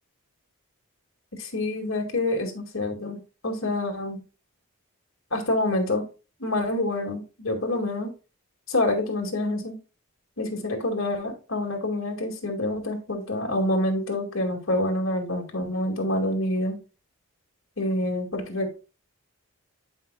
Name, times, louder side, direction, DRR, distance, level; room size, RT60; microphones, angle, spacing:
voice 1, 1.3-4.2 5.3-6.0 6.4-8.1 8.7-9.8 10.4-16.8 17.8-18.8, left 1 dB, 60° left, 2 dB, 2.1 m, -27 dB
11.0 x 5.4 x 2.3 m, 0.31 s
head